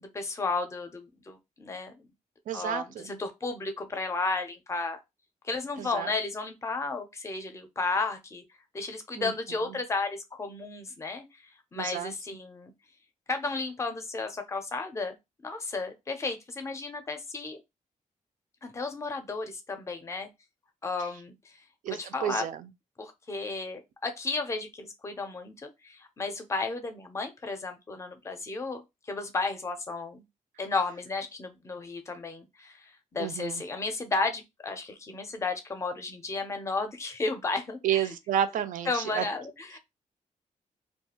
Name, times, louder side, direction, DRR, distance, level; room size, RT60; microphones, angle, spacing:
voice 1, 0.0-2.1 2.5-5.0 5.4-8.4 8.7-11.2 11.7-12.7 13.3-15.2 15.4-17.6 18.6-20.3 20.8-21.3 21.9-22.4 23.0-28.8 29.1-30.2 30.6-38.1 38.9-39.8, left 3 dB, 20° left, 0.4 m, -33 dB
voice 2, 2.5-3.2 5.8-6.1 9.2-9.3 9.7-9.8 11.8-12.1 21.8-22.7 33.2-33.6 37.8-39.2, right 10 dB, 80° right, 0.4 m, -31 dB
2.4 x 2.3 x 2.8 m
wide cardioid pair, 170°, 13 cm